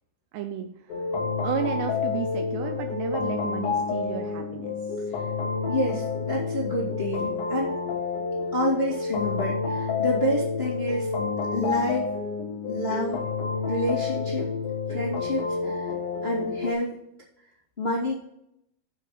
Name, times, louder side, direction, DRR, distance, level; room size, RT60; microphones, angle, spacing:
voice 1, 0.3-1.1 1.4-4.8, right 9 dB, 80° right, 5 dB, 2.5 m, -33 dB
sound 1, 0.9-16.7, left 4 dB, 65° left, 2.4 m, -29 dB
voice 2, 5.7-7.8 8.5-11.1 11.5-12.1 12.7-13.2 13.7-14.5 14.9-15.9 16.2-17.0 17.8-18.2, left 1 dB, 35° left, -6 dB, 1.0 m, -28 dB
7.1 x 5.9 x 6.4 m, 0.77 s
omnidirectional pair, 5.5 m